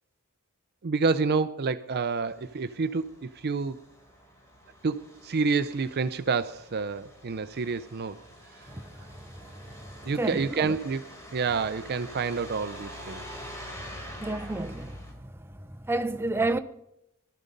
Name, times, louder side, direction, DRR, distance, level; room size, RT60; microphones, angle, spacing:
voice 1, 0.8-3.8 4.8-8.2 8.5-8.6 10.0-13.4, right 4 dB, 45° right, 0.5 m, -29 dB
Truck, 2.2-15.1, equal, 15° left, 3.6 m, -46 dB
voice 2, 10.1-10.7 14.2-15.3 15.8-16.6, right 2 dB, 10° right, 0.7 m, -30 dB
21.0 x 12.5 x 5.3 m
head